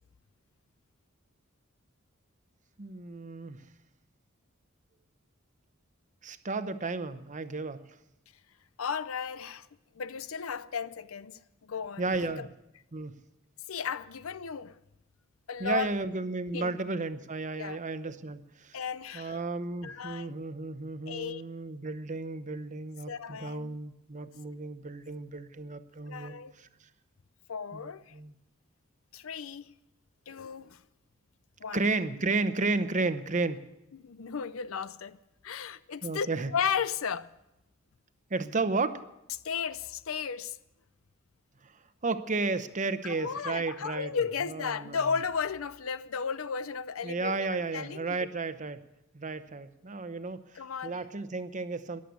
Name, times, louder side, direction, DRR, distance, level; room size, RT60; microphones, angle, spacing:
voice 1, 2.8-3.6 6.2-7.8 12.0-12.5 12.9-13.2 15.6-18.8 19.1-26.7 27.8-28.3 31.7-33.7 36.0-36.5 38.3-39.0 41.6-41.7 42.0-44.1 44.5-45.0 47.0-48.8 49.1-52.0, right 3 dB, 40° right, 0.9 m, -33 dB
voice 2, 8.8-9.7 9.9-12.5 13.7-14.8 15.5-15.9 16.5-16.8 17.6-17.8 18.7-19.4 19.8-20.4 21.1-21.4 23.1-23.8 26.1-26.5 27.5-28.1 29.1-29.7 30.3-30.8 31.6-31.8 33.9-35.2 35.4-36.3 36.5-37.3 39.4-40.6 43.0-48.3 50.5-51.0, left 6 dB, 85° left, 0.6 m, -35 dB
14.0 x 11.0 x 8.2 m
head